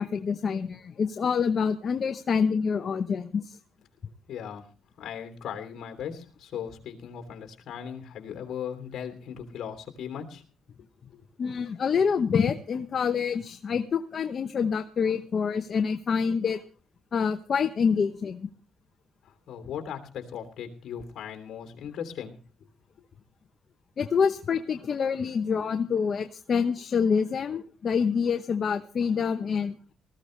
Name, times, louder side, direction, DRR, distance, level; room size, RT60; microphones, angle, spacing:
voice 1, 0.0-3.6 11.4-16.6 17.1-18.5 24.0-29.7, left 6 dB, 50° left, 7 dB, 0.9 m, -26 dB
voice 2, 4.3-4.7 5.0-10.4 11.1-11.3 19.2-22.4, left 8 dB, 70° left, 6 dB, 3.1 m, -38 dB
19.5 x 14.5 x 3.3 m, 0.40 s
cardioid pair, 90°, 0 cm